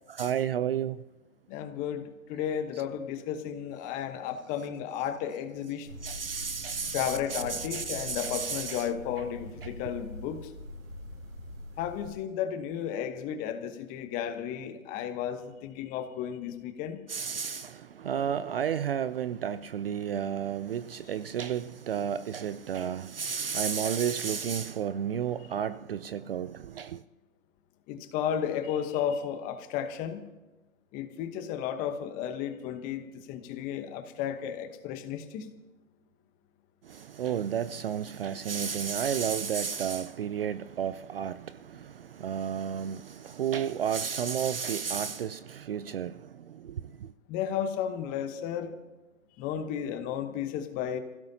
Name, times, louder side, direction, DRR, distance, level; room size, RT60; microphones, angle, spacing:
voice 1, 0.1-1.0 6.0-8.9 9.6-9.7 17.1-27.0 36.9-41.5 42.2-46.1 46.6-46.7, right 8 dB, 45° right, 0.4 m, -32 dB
voice 2, 1.5-5.9 6.9-10.5 11.8-17.0 27.9-30.2 30.9-35.5 47.3-48.7 49.4-51.0, left 9 dB, 20° left, 1.0 m, -33 dB
sound 1, 5.9-12.1, equal, 70° right, 5.9 m, -44 dB
26.0 x 16.0 x 2.8 m
hypercardioid pair, 140°, 41 cm